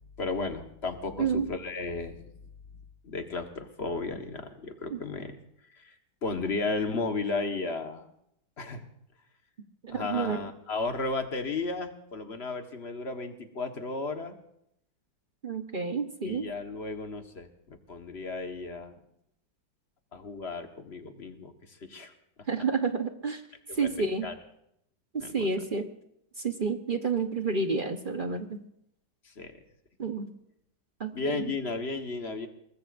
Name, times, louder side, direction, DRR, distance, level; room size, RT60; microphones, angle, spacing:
voice 1, 0.2-2.3 3.0-5.4 5.8-5.9 6.2-8.1 8.6-8.8 9.9-14.3 16.2-19.0 20.1-22.1 23.7-23.9 24.2-24.3 25.2-25.6 29.2-29.6 31.1-32.5, left 3 dB, 40° left, 6 dB, 1.6 m, -34 dB
voice 2, 9.8-10.4 15.4-16.5 22.5-23.4 23.8-24.3 25.1-25.9 26.4-28.6 30.0-30.3 31.0-31.4, right 4 dB, 35° right, 6 dB, 1.0 m, -29 dB
24.0 x 19.5 x 2.6 m, 0.74 s
omnidirectional pair, 1.9 m